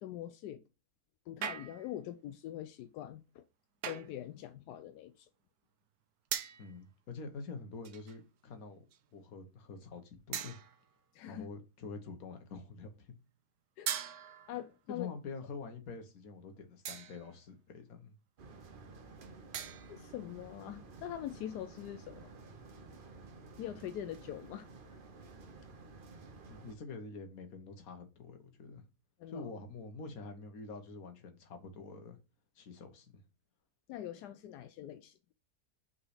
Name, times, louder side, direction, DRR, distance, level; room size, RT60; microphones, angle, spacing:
voice 1, 0.0-0.6 1.3-3.4 3.8-5.3 11.1-11.5 13.8-13.9 14.5-15.1 19.9-22.3 23.6-24.7 29.2-29.5 33.9-35.1, left 12 dB, 85° left, 1.1 m, -43 dB
sound 1, 1.4-2.0 3.8-4.2 6.3-6.7 7.8-8.3 8.9-9.1 10.3-10.9 13.9-14.7 16.9-17.3 19.5-20.1, right 9 dB, 70° right, 1.2 m, -40 dB
voice 2, 6.6-8.8 9.1-10.6 11.3-13.2 14.9-18.2 26.4-28.8 29.3-32.2 32.5-33.2, left 4 dB, 65° left, 1.6 m, -46 dB
sound 2, 18.4-26.7, right 3 dB, 40° right, 0.8 m, -53 dB
5.6 x 4.2 x 4.8 m
omnidirectional pair, 1.7 m